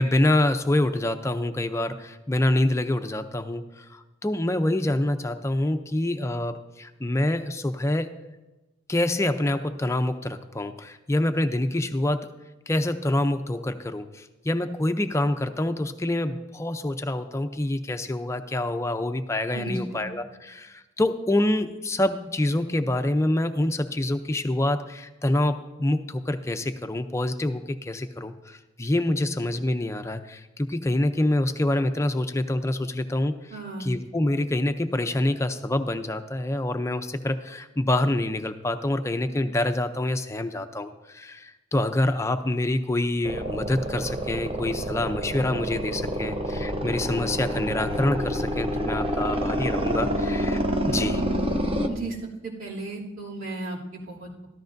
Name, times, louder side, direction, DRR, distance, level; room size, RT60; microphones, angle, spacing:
voice 1, 0.0-8.1 8.9-12.3 12.7-33.5 33.8-51.2, left 1 dB, 15° left, 9 dB, 0.5 m, -26 dB
voice 2, 19.5-20.1 33.5-33.9 51.9-52.2 52.4-54.5, right 2 dB, 80° right, -6 dB, 2.8 m, -35 dB
sound 1, 43.2-51.9, equal, 30° right, 0.7 m, -28 dB
13.5 x 13.0 x 2.6 m, 1.1 s
head